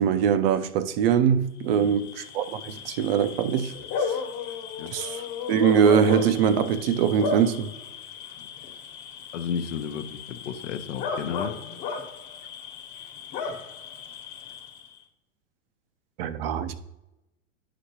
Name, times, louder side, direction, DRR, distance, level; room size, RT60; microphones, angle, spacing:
voice 1, 0.0-3.8 4.9-7.7 16.2-16.8, right 8 dB, 50° right, 0.6 m, -23 dB
Bark / Cricket, 1.7-15.0, left 5 dB, 45° left, 1.3 m, -35 dB
voice 2, 9.3-11.5, left 7 dB, 70° left, 0.8 m, -33 dB
9.8 x 5.0 x 2.8 m
hypercardioid pair, 110°, 39 cm